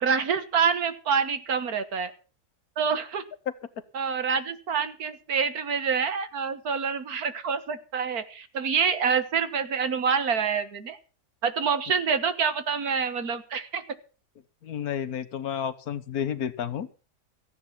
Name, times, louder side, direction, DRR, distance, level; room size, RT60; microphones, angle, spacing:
voice 1, 0.0-2.1 2.8-3.2 3.9-11.0 11.4-13.8, right 6 dB, 65° right, 11 dB, 1.8 m, -26 dB
voice 2, 14.6-17.0, left 8 dB, 65° left, 14 dB, 1.5 m, -31 dB
15.0 x 9.9 x 5.8 m, 0.35 s
omnidirectional pair, 1.7 m